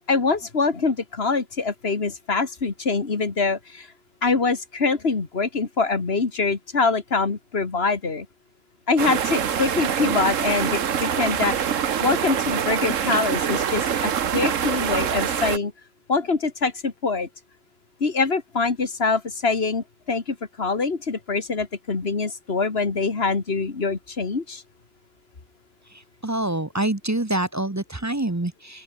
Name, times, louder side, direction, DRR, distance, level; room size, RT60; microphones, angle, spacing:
voice 1, 0.1-3.9 4.2-8.3 8.9-11.6 12.0-15.7 16.1-17.3 18.0-24.6, left 4 dB, 50° left, 2.3 m, -24 dB
sound 1, 9.0-15.6, right 8 dB, 70° right, 1.5 m, -24 dB
voice 2, 26.2-28.8, right 1 dB, 15° right, 0.9 m, -26 dB
open air
omnidirectional pair, 1.4 m